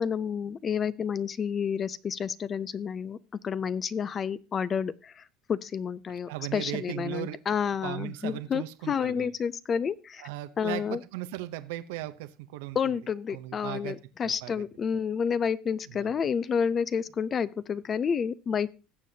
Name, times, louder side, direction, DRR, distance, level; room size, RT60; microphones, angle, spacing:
voice 1, 0.0-3.2 3.4-5.2 5.5-10.3 10.6-11.0 12.7-18.7, left 7 dB, 30° left, 0.4 m, -30 dB
voice 2, 6.3-7.4 7.8-9.3 10.2-12.8 13.3-14.5 16.0-16.1, right 15 dB, 90° right, 0.7 m, -37 dB
19.5 x 7.5 x 2.7 m
cardioid pair, 140°, 0 cm